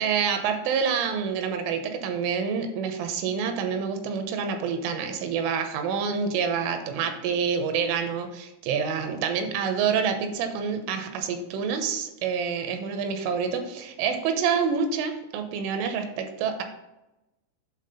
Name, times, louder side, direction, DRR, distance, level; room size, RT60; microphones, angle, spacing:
voice 1, 0.0-16.6, right 6 dB, 80° right, 6 dB, 3.2 m, -27 dB
8.5 x 4.0 x 5.3 m, 0.92 s
omnidirectional pair, 5.7 m